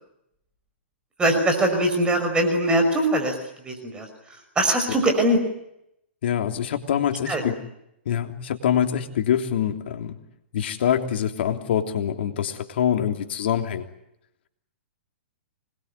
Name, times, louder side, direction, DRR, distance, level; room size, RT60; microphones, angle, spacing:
voice 1, 1.2-3.3 3.7-4.1 4.6-5.4 7.3-7.4, right 1 dB, 15° right, 5 dB, 5.6 m, -21 dB
voice 2, 6.2-7.6 8.0-10.2 10.5-13.9, left 9 dB, 65° left, 5 dB, 3.3 m, -25 dB
26.0 x 21.5 x 9.8 m, 0.81 s
hypercardioid pair, 125°, 6 cm